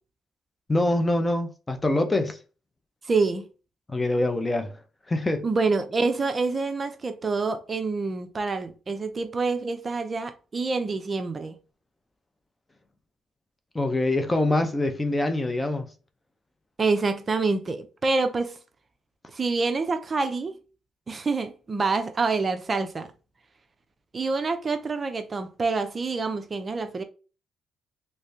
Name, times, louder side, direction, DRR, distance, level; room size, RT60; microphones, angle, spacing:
voice 1, 0.7-2.4 3.9-4.8 5.1-5.5 13.7-15.9, left 2 dB, 20° left, 0.6 m, -24 dB
voice 2, 3.1-3.5 5.4-11.6 16.8-18.6 19.3-20.6 21.1-23.1 24.1-27.0, right 3 dB, 35° right, 0.6 m, -27 dB
3.3 x 3.2 x 2.7 m
cardioid pair, 90°, 0 cm